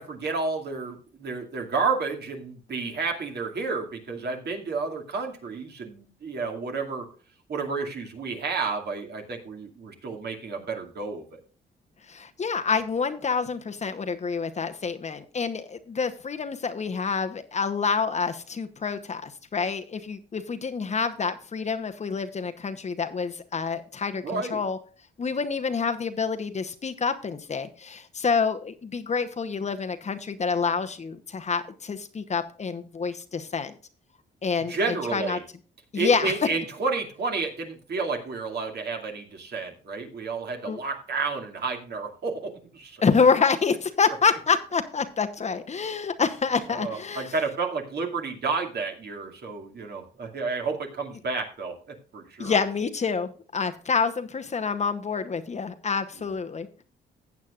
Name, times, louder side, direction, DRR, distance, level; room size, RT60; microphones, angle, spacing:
voice 1, 0.0-7.1 7.5-11.4 24.2-24.6 34.7-35.4 35.9-43.0 46.7-52.6, right 4 dB, 55° right, 2 dB, 2.4 m, -31 dB
voice 2, 12.1-24.8 25.2-33.7 34.4-35.4 35.9-36.3 40.6-40.8 43.0-47.3 52.4-56.8, left 5 dB, 35° left, 8 dB, 0.9 m, -27 dB
15.0 x 8.4 x 2.5 m, 0.39 s
cardioid pair, 90°, 20 cm